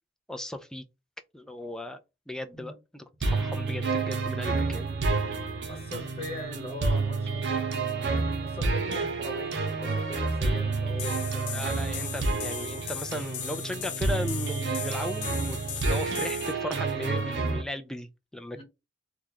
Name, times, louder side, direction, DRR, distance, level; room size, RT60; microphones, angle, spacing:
voice 1, 0.3-0.9 1.3-2.0 2.3-3.0 3.3-4.9 11.5-18.6, left 1 dB, 5° left, 0.3 m, -36 dB
sound 1, 3.2-17.6, right 3 dB, 65° right, 0.7 m, -29 dB
voice 2, 5.7-11.9 18.5-18.6, left 1 dB, 30° left, 1.0 m, -40 dB
sound 2, 11.0-16.5, left 12 dB, 70° left, 0.5 m, -38 dB
3.0 x 2.3 x 3.8 m
head